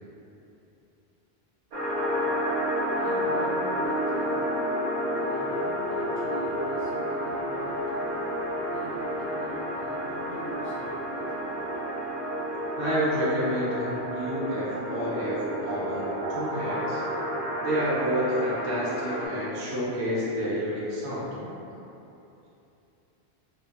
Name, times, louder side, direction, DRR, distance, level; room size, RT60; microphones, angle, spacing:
sound 1, 1.7-19.3, equal, 55° right, 0.7 m, -30 dB
voice 1, 3.0-4.4 5.1-7.8 8.7-11.2, left 1 dB, 70° left, -9 dB, 0.8 m, -41 dB
voice 2, 12.8-17.0 17.6-21.5, equal, 90° right, -8 dB, 1.0 m, -29 dB
2.7 x 2.4 x 2.4 m, 2.9 s
omnidirectional pair, 1.1 m